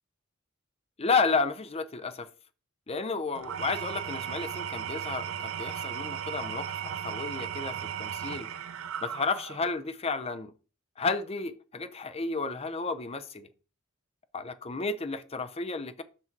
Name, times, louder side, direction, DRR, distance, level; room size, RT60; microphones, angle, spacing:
voice 1, 1.0-2.3 2.9-8.5 9.0-10.5 11.0-13.5 14.3-16.0, left 4 dB, 30° left, 0.6 m, -32 dB
Engine / Tools, 3.3-9.8, right 9 dB, 85° right, 0.6 m, -36 dB
6.1 x 5.9 x 4.5 m
head